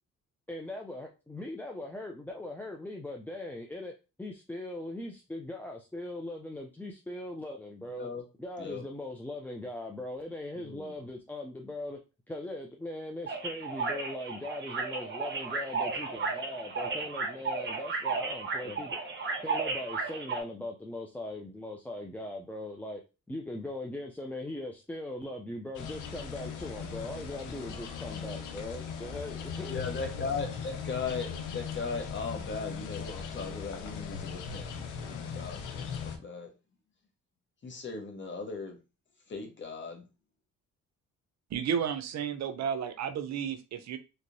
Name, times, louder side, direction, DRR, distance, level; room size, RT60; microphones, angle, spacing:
voice 1, 0.5-3.9 4.2-8.1 8.4-12.0 12.3-19.0 19.4-23.0 23.3-29.8, left 1 dB, 5° left, 1 dB, 0.4 m, -40 dB
voice 2, 10.6-10.9 18.6-18.8 29.7-36.5 37.6-38.8 39.3-40.0, left 4 dB, 40° left, 3 dB, 1.1 m, -38 dB
sound 1, 13.3-20.4, right 4 dB, 40° right, 1.1 m, -34 dB
sound 2, 25.7-36.2, left 6 dB, 85° left, 0.7 m, -39 dB
voice 3, 41.5-44.0, right 7 dB, 65° right, 10 dB, 0.6 m, -32 dB
3.2 x 3.0 x 2.6 m, 0.29 s
cardioid pair, 90°, 30 cm